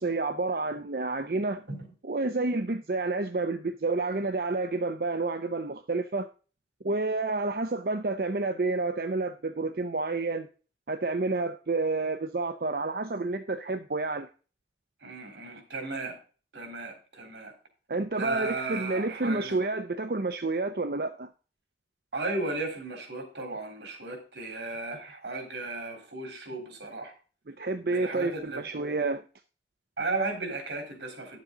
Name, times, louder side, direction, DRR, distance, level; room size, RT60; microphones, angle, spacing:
voice 1, 0.0-1.6 2.0-6.3 6.8-10.5 10.9-14.3 17.9-21.3 27.5-29.2, right 3 dB, 55° right, 0.6 m, -29 dB
voice 2, 15.0-16.2 16.5-17.5 18.2-19.6 22.1-27.1 27.9-28.6 30.0-31.4, right 3 dB, 85° right, 3.6 m, -35 dB
11.5 x 7.5 x 3.9 m
head